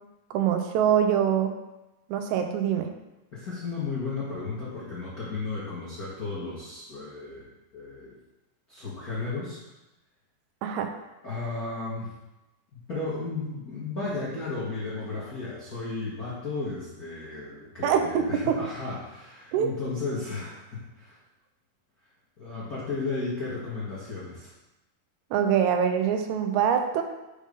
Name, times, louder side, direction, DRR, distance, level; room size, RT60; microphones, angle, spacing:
voice 1, 0.3-1.5 2.1-2.9 10.6-10.9 17.8-18.6 19.5-19.7 25.3-27.0, right 8 dB, 85° right, 5 dB, 1.7 m, -24 dB
voice 2, 3.3-7.4 7.7-8.2 8.7-9.6 11.2-12.1 12.9-21.2 22.4-24.5, left 3 dB, 65° left, -9 dB, 0.9 m, -34 dB
5.3 x 5.1 x 5.2 m, 0.97 s
omnidirectional pair, 4.0 m